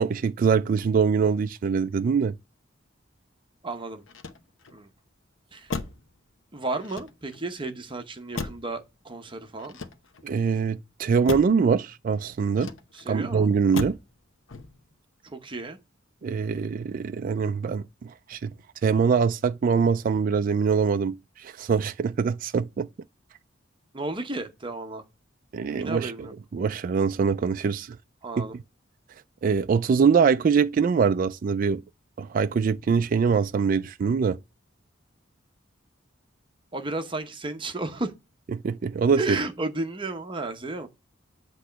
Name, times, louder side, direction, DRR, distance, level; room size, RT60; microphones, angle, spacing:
voice 1, 0.0-2.3 10.2-12.7 13.1-14.0 16.2-18.5 18.8-22.9 25.5-26.3 26.5-28.0 28.4-28.6 29.4-31.8 32.2-34.4 38.5-39.4, right 5 dB, 45° right, 0.3 m, -23 dB
voice 2, 3.6-4.0 4.7-4.9 5.5-5.8 6.5-9.8 12.9-13.5 15.2-15.8 23.9-25.0 25.7-26.3 28.2-28.6 36.7-38.1 39.2-40.9, right 2 dB, 25° right, 0.9 m, -33 dB
Motor vehicle (road), 4.0-4.8 5.7-6.1 6.8-7.5 8.4-8.8 9.6-10.4 11.3-11.6 12.5-13.1 13.7-14.1 14.5-14.9, left 3 dB, 90° left, 0.9 m, -35 dB
8.2 x 3.0 x 5.6 m
head